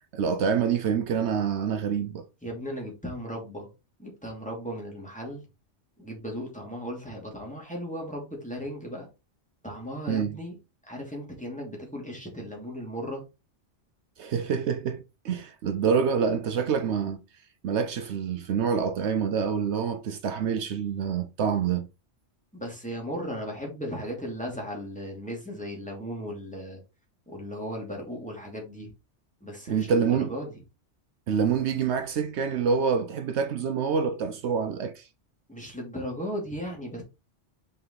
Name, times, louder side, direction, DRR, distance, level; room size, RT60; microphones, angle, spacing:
voice 1, 0.1-2.3 10.1-10.4 14.2-17.2 17.6-21.9 29.7-30.3 31.3-35.1, right 6 dB, 75° right, 0.9 m, -26 dB
voice 2, 2.4-3.7 4.0-5.4 6.0-9.1 9.6-10.5 10.8-13.2 22.5-26.8 27.3-28.9 29.4-30.6 35.5-37.0, equal, 5° left, 2.8 m, -36 dB
5.5 x 5.0 x 3.9 m
omnidirectional pair, 1.2 m